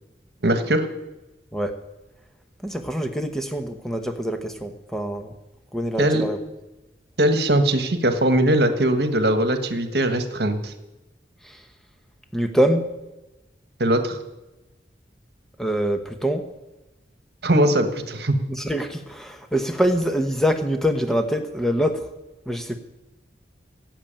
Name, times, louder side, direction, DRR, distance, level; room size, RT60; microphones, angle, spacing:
voice 1, 0.4-0.9 6.0-6.3 7.2-10.7 13.8-14.2 17.4-18.4, right 1 dB, 65° right, 8 dB, 1.4 m, -20 dB
voice 2, 2.6-5.3 5.7-6.4 11.5-11.6 12.3-12.9 15.6-16.5 18.5-22.1 22.5-22.8, equal, ahead, 6 dB, 0.9 m, -24 dB
15.5 x 7.7 x 8.9 m, 1.0 s
head